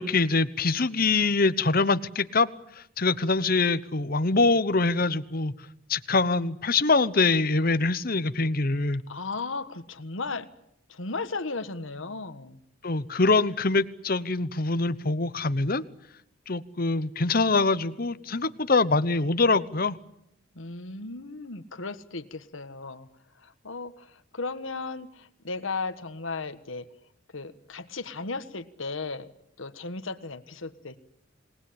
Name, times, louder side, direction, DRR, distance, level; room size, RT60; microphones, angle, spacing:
voice 1, 0.0-2.5 2.8-5.5 5.9-9.0 12.8-15.8 16.5-20.0, left 3 dB, 45° left, 14 dB, 1.0 m, -24 dB
voice 2, 9.1-10.5 10.9-12.6 20.5-23.1 23.4-26.9 27.3-29.3 29.6-31.0, left 3 dB, 70° left, 10 dB, 1.5 m, -35 dB
27.5 x 19.5 x 8.8 m, 0.78 s
head